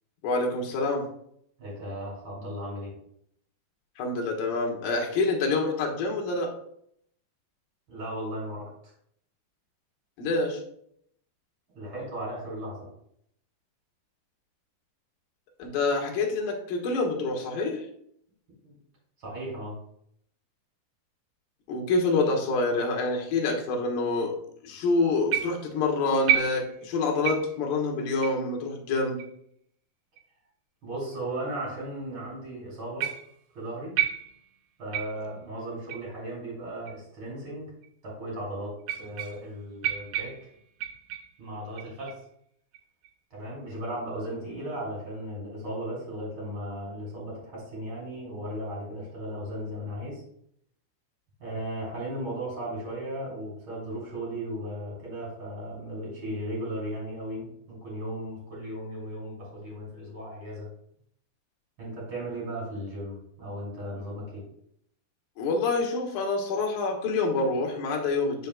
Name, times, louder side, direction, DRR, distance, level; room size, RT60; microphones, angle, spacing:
voice 1, 0.2-1.1 4.0-6.5 10.2-10.6 15.6-17.8 21.7-24.3 24.6-29.2 65.4-68.5, left 3 dB, 70° left, 0 dB, 2.6 m, -27 dB
voice 2, 1.6-2.9 7.9-8.9 11.7-12.9 18.6-18.8 19.2-19.8 30.8-33.1 33.5-34.0 34.8-37.7 38.0-40.4 41.4-42.2 43.3-50.2 51.4-60.7 61.8-64.4, right 1 dB, 35° right, -5 dB, 3.0 m, -36 dB
sound 1, 25.3-25.8 26.3-26.9 27.2-27.6 28.2-28.4 29.2-29.3 30.2-30.3 31.1-31.2 33.0-33.4 34.0-34.6 34.9-35.3 35.9-36.1 36.9-37.0 37.8-37.9 38.8-39.6 39.8-41.4 41.8-42.2 42.7-43.1, right 10 dB, 85° right, 2.9 m, -31 dB
9.5 x 5.7 x 2.3 m, 0.70 s
omnidirectional pair, 4.8 m